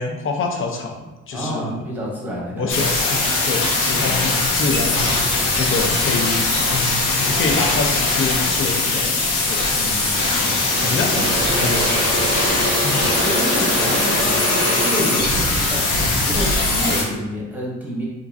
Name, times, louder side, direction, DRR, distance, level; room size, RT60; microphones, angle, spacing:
voice 1, 0.0-1.7 2.5-9.2 9.5-9.8 10.8-11.1 11.5-11.8 12.8-13.0 13.8-13.9, left 3 dB, 45° left, 2 dB, 0.6 m, -26 dB
voice 2, 1.3-3.3 4.0-4.3 9.7-11.6 12.9-18.0, equal, 5° right, -5 dB, 1.0 m, -29 dB
sound 1, 2.7-17.0, left 3 dB, 80° left, 0.7 m, -20 dB
Engine / Drill, 10.2-10.4 10.7-16.9, right 2 dB, 50° right, 0.6 m, -25 dB
2.9 x 2.5 x 2.5 m, 1.1 s
cardioid pair, 90°, 30 cm